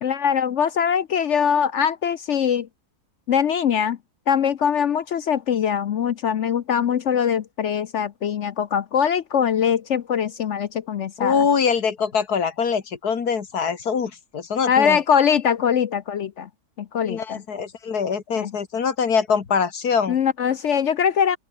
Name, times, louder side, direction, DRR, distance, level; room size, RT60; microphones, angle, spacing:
voice 1, 0.0-2.7 3.3-4.0 4.3-11.4 14.7-16.5 16.8-17.4 18.4-18.5 20.1-21.4, left 8 dB, 60° left, 0.9 m, -22 dB
voice 2, 11.2-15.0 17.0-20.2, left 6 dB, 80° left, 2.4 m, -23 dB
open air
omnidirectional pair, 1.6 m